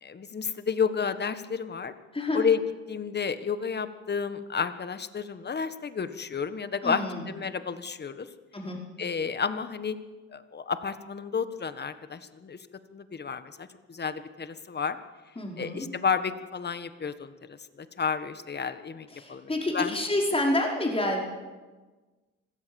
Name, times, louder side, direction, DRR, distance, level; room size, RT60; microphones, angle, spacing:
voice 1, 0.0-1.9 2.3-2.6 2.9-8.3 9.0-10.0 10.3-12.7 12.9-15.0 15.6-20.0, left 6 dB, 35° left, 11 dB, 1.5 m, -31 dB
voice 2, 6.8-7.3 8.5-8.8 15.3-15.9 19.1-21.2, left 1 dB, 20° left, 0 dB, 5.1 m, -28 dB
25.5 x 16.5 x 7.2 m, 1.3 s
cardioid pair, 90°, 30 cm